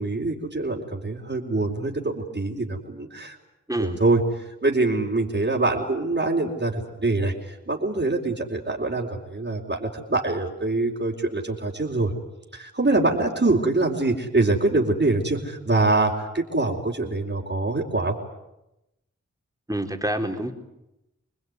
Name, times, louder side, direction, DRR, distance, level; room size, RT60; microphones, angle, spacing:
voice 1, 0.0-3.4 3.8-4.2 4.6-12.1 12.5-18.1, right 2 dB, 40° right, -5 dB, 4.3 m, -24 dB
voice 2, 3.7-4.0 19.7-20.5, right 1 dB, 10° right, 3 dB, 3.9 m, -27 dB
27.5 x 20.5 x 9.6 m, 0.92 s
cardioid pair, 45°, 29 cm